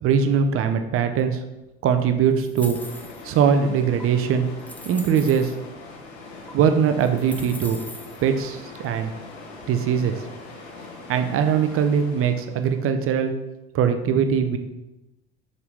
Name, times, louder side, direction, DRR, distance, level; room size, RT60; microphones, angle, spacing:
voice 1, 0.0-1.4 1.8-2.8 3.2-4.5 4.9-5.5 6.5-7.8 8.2-9.1 9.7-10.2 11.1-13.3 13.7-14.6, right 7 dB, 40° right, 8 dB, 0.7 m, -21 dB
sound 1, 2.4-3.4 4.0-4.1 4.6-5.6 6.5-6.6 7.0-8.2, left 1 dB, 5° left, 0.6 m, -41 dB
sound 2, 2.7-12.9, left 3 dB, 75° left, 1.3 m, -42 dB
6.8 x 4.0 x 3.4 m, 1.0 s
hypercardioid pair, 65°, 33 cm